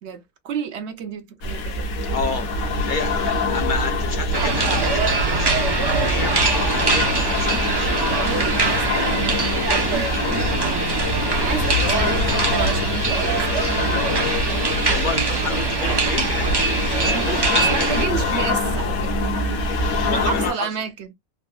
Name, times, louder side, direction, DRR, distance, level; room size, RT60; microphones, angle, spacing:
voice 1, 0.0-1.9 8.2-10.8 11.4-13.4 17.1-19.1 20.0-21.1, right 7 dB, 60° right, 0.8 m, -31 dB
sound 1, 1.4-20.5, left 2 dB, 75° left, 1.2 m, -25 dB
voice 2, 2.1-7.9 12.1-12.5 14.9-18.5 20.1-20.7, left 5 dB, 55° left, 0.5 m, -31 dB
sound 2, 2.2-17.8, left 2 dB, 85° right, 1.1 m, -33 dB
sound 3, 4.3-18.0, right 3 dB, 40° right, 0.3 m, -23 dB
3.7 x 2.1 x 2.2 m
omnidirectional pair, 1.5 m